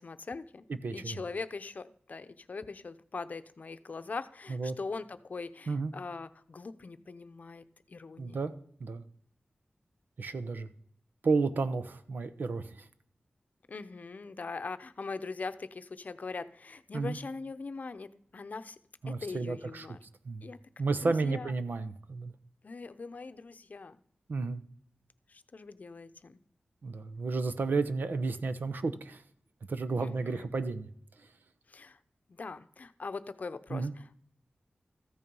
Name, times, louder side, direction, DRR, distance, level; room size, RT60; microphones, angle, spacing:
voice 1, 0.0-0.7 0.9-8.4 13.7-18.8 19.1-20.0 20.4-20.6 21.0-21.5 22.6-24.0 25.3-26.4 30.0-30.5 31.7-32.0 32.3-34.2, left 4 dB, 55° left, 12 dB, 0.7 m, -41 dB
voice 2, 0.8-1.2 4.5-4.8 5.7-5.9 8.2-8.5 8.8-9.0 10.2-10.7 11.2-12.8 16.9-17.2 19.0-19.9 20.2-20.5 20.8-22.3 24.3-24.6 26.8-29.2 29.7-30.9 33.7-33.9, right 4 dB, 70° right, 11 dB, 0.9 m, -32 dB
14.0 x 8.6 x 5.4 m, 0.63 s
wide cardioid pair, 100°, 3 cm